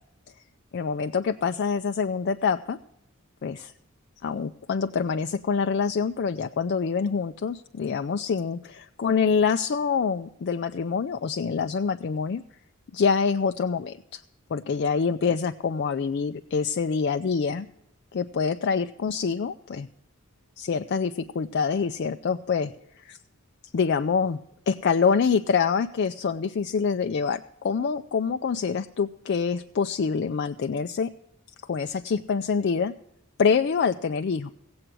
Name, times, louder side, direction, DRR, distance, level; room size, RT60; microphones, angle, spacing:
voice 1, 0.7-2.8 3.4-3.7 4.2-12.4 12.9-14.2 14.5-17.7 18.1-19.9 20.6-22.7 23.0-23.2 23.7-24.4 24.7-31.1 31.7-32.9 33.4-34.5, left 5 dB, 55° left, 7 dB, 0.4 m, -26 dB
16.5 x 7.9 x 6.1 m, 0.78 s
head